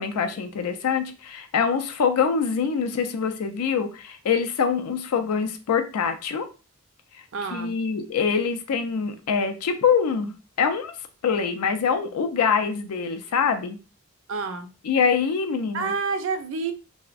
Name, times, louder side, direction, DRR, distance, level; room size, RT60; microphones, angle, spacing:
voice 1, 0.0-6.5 7.1-7.2 7.5-10.9 11.2-13.8 14.8-15.9, left 6 dB, 90° left, 7 dB, 0.4 m, -24 dB
voice 2, 7.3-7.7 14.3-14.7 15.7-16.7, right 4 dB, 60° right, 8 dB, 0.4 m, -28 dB
3.3 x 2.0 x 2.3 m, 0.33 s
head